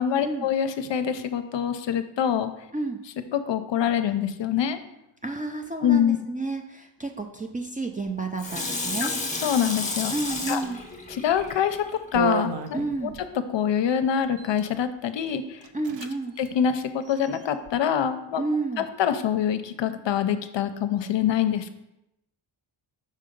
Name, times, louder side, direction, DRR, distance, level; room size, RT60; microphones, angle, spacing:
voice 1, 0.0-2.5 3.3-4.8 5.8-6.2 9.0-9.1 9.4-10.1 10.5-10.6 11.1-12.8 13.5-15.6 16.4-18.4 18.8-21.7, left 8 dB, 65° left, 10 dB, 0.6 m, -25 dB
voice 2, 5.2-9.1 10.1-10.8 12.7-13.2 15.7-16.3 18.4-18.9, right 3 dB, 20° right, 3 dB, 0.3 m, -30 dB
Water tap faucet / Sink (filling or washing), 8.4-12.2 12.7-12.8, left 3 dB, 15° left, 0.7 m, -32 dB
sound 1, 11.3-11.5 12.1-13.3 14.2-14.7 15.3-15.4 15.6-16.1 16.4-16.5 17.0-17.7, right 5 dB, 65° right, 0.6 m, -33 dB
5.4 x 3.8 x 5.1 m, 0.87 s
wide cardioid pair, 135°, 47 cm